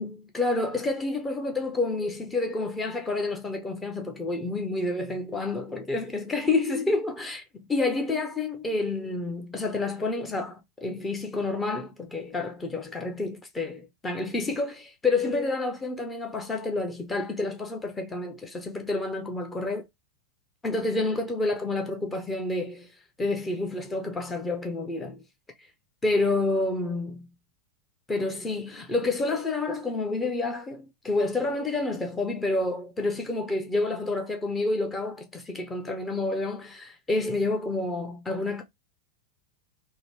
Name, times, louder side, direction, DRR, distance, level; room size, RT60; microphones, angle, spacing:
voice 1, 0.0-19.9 20.6-22.9 23.2-25.2 26.0-27.3 28.1-38.6, left 2 dB, 15° left, 1.0 m, -29 dB
4.0 x 2.2 x 3.3 m
figure-of-eight pair, 90°, 0 cm